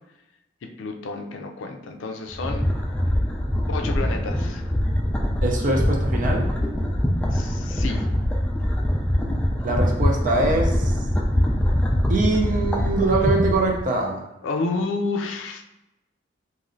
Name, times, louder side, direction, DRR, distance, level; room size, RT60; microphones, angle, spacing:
voice 1, 0.6-2.7 3.7-4.7 7.3-8.0 14.4-15.6, left 3 dB, 90° left, 4 dB, 0.4 m, -30 dB
sound 1, 2.3-13.8, equal, 5° left, 0.3 m, -23 dB
voice 2, 5.4-6.5 9.6-10.9 12.1-14.2, right 2 dB, 45° right, 1 dB, 0.5 m, -23 dB
3.0 x 2.7 x 2.6 m, 0.93 s
head